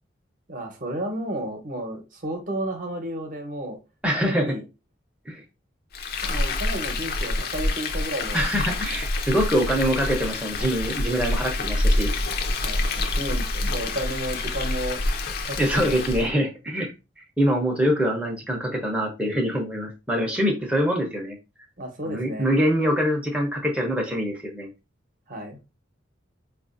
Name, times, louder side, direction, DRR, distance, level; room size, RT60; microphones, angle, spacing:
voice 1, 0.5-3.8 4.3-4.6 6.2-8.5 12.6-15.0 15.4-16.0 21.8-22.5 25.3-25.6, right 1 dB, 45° right, 3 dB, 0.9 m, -32 dB
voice 2, 4.0-4.5 5.3-5.4 8.3-12.1 15.6-16.9 17.4-21.4 22.0-24.7, equal, 5° right, -1 dB, 0.6 m, -24 dB
Frying (food), 5.9-16.3, left 2 dB, 50° left, 0.5 m, -27 dB
4.7 x 2.4 x 2.5 m, 0.28 s
head